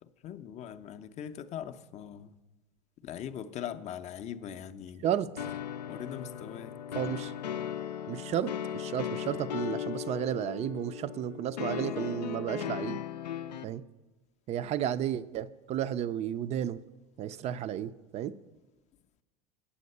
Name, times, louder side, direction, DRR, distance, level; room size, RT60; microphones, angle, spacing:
voice 1, 0.0-2.4 3.0-5.0 5.9-6.7, left 9 dB, 35° left, 0.5 m, -41 dB
voice 2, 5.0-5.5 6.9-7.3 8.1-13.0 13.6-13.8 14.5-16.8 17.2-18.4, right 10 dB, 30° right, 0.4 m, -33 dB
sound 1, 5.4-13.6, left 9 dB, 85° left, 0.4 m, -37 dB
8.6 x 7.6 x 5.4 m
hypercardioid pair, 85°, 21 cm